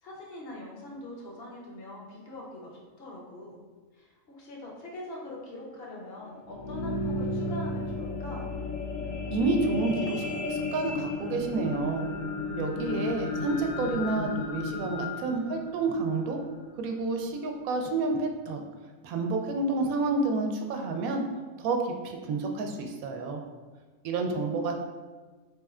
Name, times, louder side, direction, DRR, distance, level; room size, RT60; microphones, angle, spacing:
voice 1, 0.0-3.6 3.9-8.5 24.2-24.7, left 2 dB, 50° left, -3 dB, 0.9 m, -43 dB
sound 1, 6.3-16.8 17.4-17.5, left 2 dB, 75° left, 1.0 m, -34 dB
voice 2, 9.3-12.1 12.6-16.4 16.8-18.6 19.0-21.2 21.6-23.4 24.0-24.7, right 3 dB, 85° right, 3 dB, 1.0 m, -29 dB
4.2 x 3.1 x 2.4 m, 1.4 s
omnidirectional pair, 1.4 m